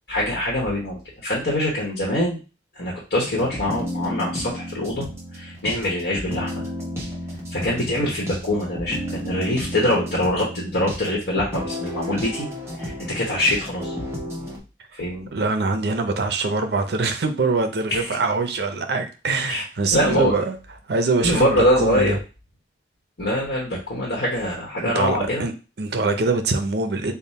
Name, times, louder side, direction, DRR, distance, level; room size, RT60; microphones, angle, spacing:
voice 1, 0.1-2.4 2.7-5.1 5.3-6.6 7.5-12.5 12.8-13.9 15.0-15.3 17.9-18.1 19.5-19.6 19.9-20.3 21.2-22.2 23.2-25.4, left 1 dB, 75° left, -4 dB, 1.1 m, -24 dB
sound 1, 3.2-14.6, equal, 15° right, 0.9 m, -32 dB
voice 2, 15.3-20.6 20.9-22.2 24.8-27.1, right 3 dB, 70° right, 6 dB, 0.6 m, -23 dB
3.6 x 2.1 x 4.1 m, 0.32 s
head